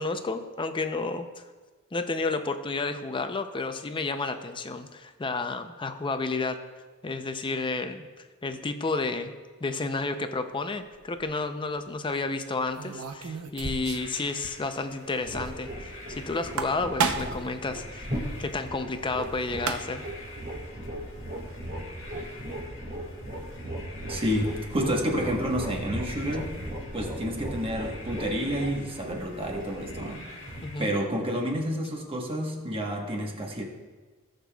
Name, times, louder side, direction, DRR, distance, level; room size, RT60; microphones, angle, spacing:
voice 1, 0.0-1.4 1.9-6.6 7.0-9.3 9.6-18.1 18.4-20.0 30.6-30.9, left 3 dB, 25° left, 8 dB, 0.5 m, -31 dB
sound 1, 10.9-11.2 12.7-14.2 14.4-14.5 14.8-14.9 16.4-17.5 19.2-19.3 19.5-20.1, right 5 dB, 70° right, 0.7 m, -31 dB
sound 2, 13.9-30.8, left 2 dB, 60° left, 1.5 m, -48 dB
sound 3, 15.2-31.7, right 1 dB, 40° right, 1.8 m, -38 dB
voice 2, 24.1-26.5 26.9-30.3 30.8-33.6, equal, 25° right, 0 dB, 1.2 m, -29 dB
18.0 x 6.6 x 2.3 m, 1.3 s
head